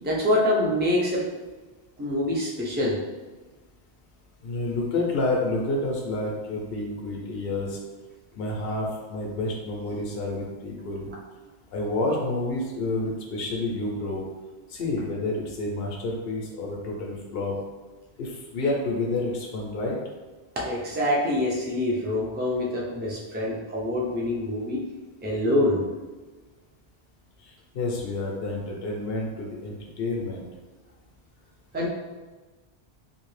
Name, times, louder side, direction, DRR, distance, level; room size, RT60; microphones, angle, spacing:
voice 1, 0.0-1.2 2.0-3.0 20.6-24.8 25.2-25.8 31.7-31.9, left 1 dB, 15° right, -5 dB, 0.4 m, -25 dB
voice 2, 4.4-7.8 8.3-11.1 11.7-14.2 14.7-17.5 18.2-20.0 27.4-30.5, left 2 dB, 70° left, -1 dB, 0.8 m, -29 dB
2.7 x 2.5 x 3.1 m, 1.3 s
omnidirectional pair, 1.1 m